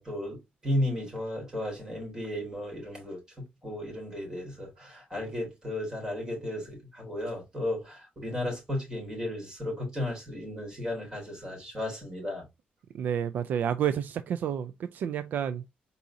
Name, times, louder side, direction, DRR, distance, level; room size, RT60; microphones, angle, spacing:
voice 1, 0.0-12.4, left 1 dB, 20° right, 3.4 m, -34 dB
voice 2, 12.9-15.7, right 9 dB, 65° right, 0.3 m, -30 dB
4.8 x 4.1 x 2.6 m
cardioid pair, 130°, 3 cm